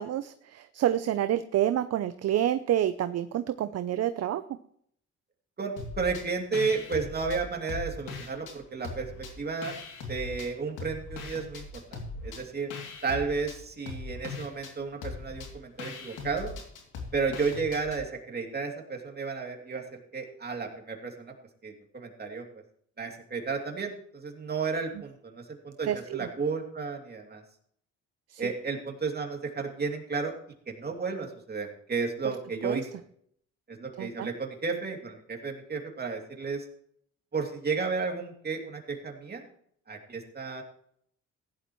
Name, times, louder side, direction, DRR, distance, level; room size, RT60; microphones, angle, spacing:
voice 1, 0.0-4.4 25.9-26.3 28.3-28.4 32.6-32.8 34.0-34.3, right 11 dB, 55° right, 11 dB, 0.6 m, -28 dB
voice 2, 5.6-9.1 9.4-9.8 10.1-12.7 13.0-16.5 17.1-19.8 20.1-21.3 21.6-22.5 23.0-27.4 28.4-30.3 30.7-32.9 33.7-36.7 37.3-39.4 39.9-40.6, right 4 dB, 35° right, 2 dB, 2.8 m, -33 dB
sound 1, 5.8-6.3 6.5-8.6 8.8-10.5 10.8-18.0, left 3 dB, 90° left, 2.8 m, -40 dB
15.5 x 11.0 x 3.1 m, 0.66 s
cardioid pair, 90°, 30 cm